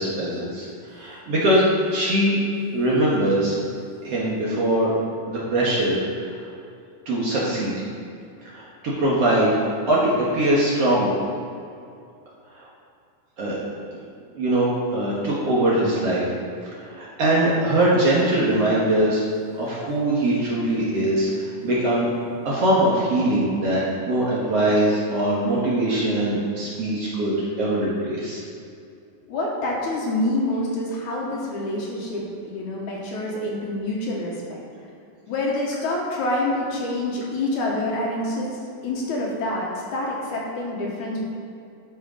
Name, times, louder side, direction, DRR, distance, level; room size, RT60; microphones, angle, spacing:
voice 1, 0.0-1.6 1.9-2.4 2.7-3.5 4.0-4.9 5.3-6.2 7.1-7.8 8.4-9.5 9.9-11.1 12.6-12.7 13.4-13.6 13.9-14.0 14.4-16.2 16.9-19.2 19.5-22.1 22.5-28.4, right 1 dB, 55° right, -7 dB, 2.0 m, -22 dB
voice 2, 29.3-34.6 35.3-38.5 38.8-41.2, left 1 dB, 65° left, -3 dB, 2.6 m, -27 dB
12.0 x 5.6 x 5.0 m, 2.5 s
omnidirectional pair, 4.0 m